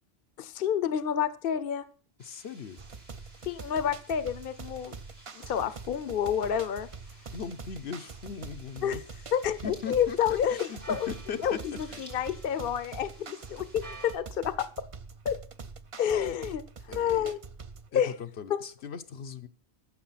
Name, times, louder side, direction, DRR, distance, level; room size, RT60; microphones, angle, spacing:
voice 1, 0.4-1.8 3.4-5.0 5.3-6.9 8.8-9.0 9.3-11.1 11.4-14.7 15.2-15.4 16.0-16.6 16.9-17.4 17.9-18.1 18.5-18.6, left 9 dB, 60° left, 14 dB, 0.9 m, -29 dB
voice 2, 2.2-2.8 7.3-9.0 9.6-11.6 11.9-12.0 16.9-17.3 17.9-19.5, left 6 dB, 85° left, 7 dB, 1.1 m, -39 dB
sound 1, 2.2-14.1, right 2 dB, 70° right, 4.4 m, -53 dB
sound 2, 2.8-17.9, right 4 dB, 35° right, 0.6 m, -45 dB
15.0 x 7.0 x 5.7 m, 0.42 s
omnidirectional pair, 1.1 m